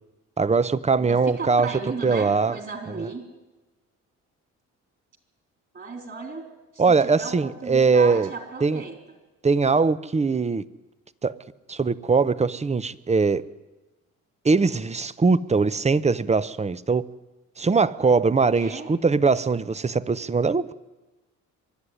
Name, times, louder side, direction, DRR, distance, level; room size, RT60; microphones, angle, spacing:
voice 1, 0.4-1.7 2.0-2.6 6.8-8.3 8.6-8.8 9.4-10.6 11.2-11.3 11.7-13.4 14.4-17.0 17.6-20.7, right 4 dB, 20° right, 16 dB, 0.8 m, -21 dB
voice 2, 1.0-3.2 5.7-6.5 6.7-9.0 18.5-18.9, right 4 dB, 40° right, 4 dB, 3.9 m, -35 dB
24.0 x 11.0 x 9.9 m, 1.1 s
cardioid pair, 90°, 30 cm